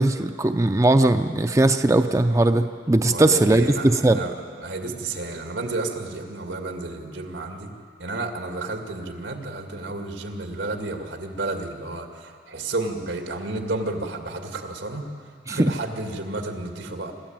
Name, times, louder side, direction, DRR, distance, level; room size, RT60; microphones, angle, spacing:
voice 1, 0.0-4.2 15.5-15.7, right 2 dB, 15° right, 8 dB, 0.5 m, -19 dB
voice 2, 3.0-4.3 4.6-7.7 8.0-15.1 15.5-17.1, right 2 dB, 90° right, 4 dB, 2.2 m, -31 dB
24.5 x 14.0 x 8.9 m, 2.2 s
head